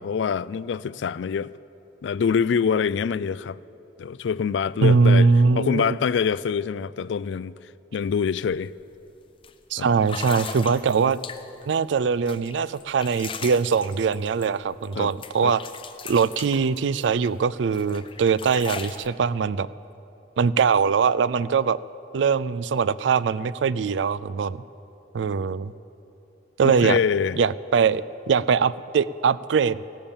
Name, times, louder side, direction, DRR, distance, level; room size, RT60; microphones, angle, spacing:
voice 1, 0.0-1.5 2.0-3.6 4.0-7.5 7.9-8.7 9.8-9.9 15.0-15.1 15.4-15.5 26.6-27.4, left 6 dB, 80° left, 0.3 m, -25 dB
voice 2, 4.8-6.0 9.7-11.2 11.7-15.6 16.0-19.7 20.4-21.8 22.1-24.6 25.1-25.7 26.6-27.0 27.4-29.8, right 5 dB, 85° right, 0.4 m, -22 dB
sound 1, 8.0-8.2 8.5-8.8 9.4-9.5 10.0-11.7 12.3-15.0 15.2-17.3 17.7-19.1, left 6 dB, 30° left, 0.6 m, -38 dB
16.0 x 12.0 x 7.2 m
head